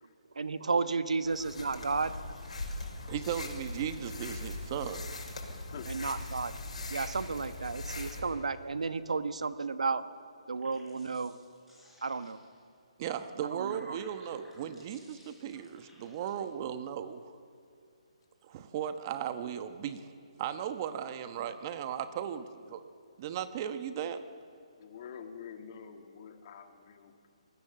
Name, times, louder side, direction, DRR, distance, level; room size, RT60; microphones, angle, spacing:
voice 1, 0.3-2.1 2.6-2.7 5.9-6.6 6.9-10.0 10.5-11.3 12.0-12.4 13.5-14.0, right 4 dB, 80° right, 11 dB, 1.2 m, -33 dB
sound 1, 1.2-8.2, left 2 dB, 85° left, 5.9 m, -40 dB
voice 2, 3.1-5.3 13.0-17.4 18.4-20.0 20.4-22.8 23.2-24.2, right 9 dB, 30° right, 10 dB, 1.2 m, -37 dB
sound 2, 10.5-12.6 13.3-16.3, equal, 5° right, 6.9 m, -60 dB
voice 3, 24.8-27.3, left 7 dB, 40° left, 5 dB, 2.4 m, -47 dB
26.0 x 20.5 x 7.5 m, 2.4 s
hypercardioid pair, 155°, 4 cm